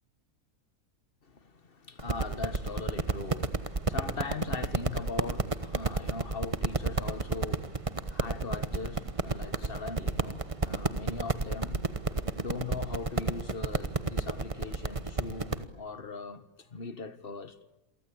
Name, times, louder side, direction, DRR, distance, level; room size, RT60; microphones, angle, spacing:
voice 1, 1.2-12.1 12.3-17.6, left 4 dB, 40° left, 1.7 m, -40 dB
sound 1, 2.0-15.6, right 3 dB, 25° right, 1.2 m, -31 dB
28.5 x 24.0 x 8.7 m
omnidirectional pair, 1.5 m